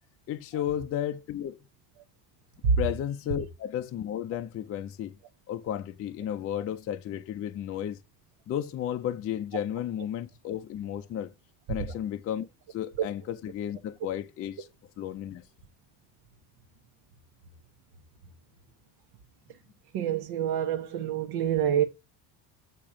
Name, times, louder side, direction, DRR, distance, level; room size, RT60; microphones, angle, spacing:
voice 1, 0.3-1.6 2.8-5.2 5.5-8.0 8.5-11.3 11.7-12.4 12.7-14.7 15.0-15.4, left 10 dB, 35° left, 0.5 m, -33 dB
voice 2, 19.9-21.8, right 8 dB, 65° right, 1.0 m, -26 dB
8.7 x 3.0 x 4.8 m
cardioid pair, 150°, 41 cm